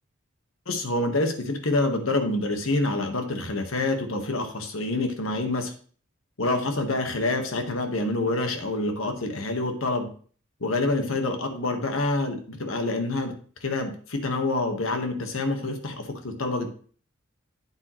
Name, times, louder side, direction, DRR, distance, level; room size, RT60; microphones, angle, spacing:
voice 1, 0.7-5.7 6.4-10.1 10.6-13.3 13.6-16.7, left 2 dB, 75° left, 5 dB, 1.5 m, -27 dB
8.8 x 8.2 x 3.1 m, 0.44 s
head